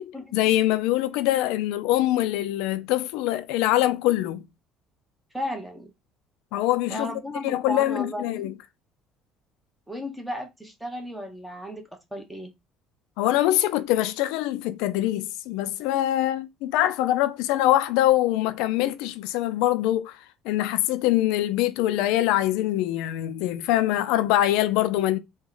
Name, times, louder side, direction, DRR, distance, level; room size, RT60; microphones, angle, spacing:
voice 1, 0.3-4.4 6.5-7.1 7.4-8.5 13.2-20.2 20.5-25.2, left 14 dB, 90° left, 0.3 m, -23 dB
voice 2, 5.3-5.9 6.9-8.5 9.9-12.5, left 1 dB, 5° right, 0.8 m, -34 dB
2.9 x 2.1 x 3.8 m
cardioid pair, 140°, 0 cm